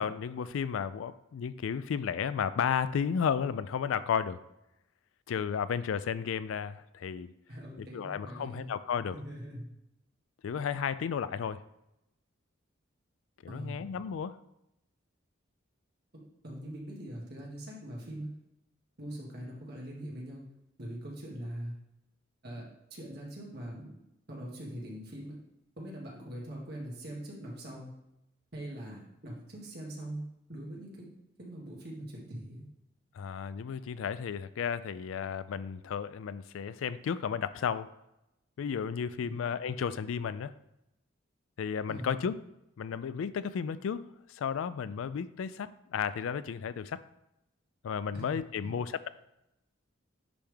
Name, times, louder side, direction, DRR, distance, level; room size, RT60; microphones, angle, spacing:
voice 1, 0.0-4.4 5.3-7.3 7.8-9.2 10.4-11.6 13.4-14.4 33.1-37.9 38.6-40.5 41.6-42.3 42.8-44.0 44.3-47.0 47.8-49.1, left 7 dB, 80° left, 15 dB, 0.3 m, -33 dB
voice 2, 7.5-8.7 9.1-9.7 13.5-13.8 16.4-18.3 19.0-20.5 20.8-21.7 22.4-25.4 25.8-27.9 28.5-30.2 30.5-31.1 31.4-32.6 39.2-39.4 41.9-42.2 48.1-48.7, right 1 dB, 50° right, -3 dB, 1.8 m, -42 dB
10.0 x 3.5 x 3.4 m, 0.86 s
head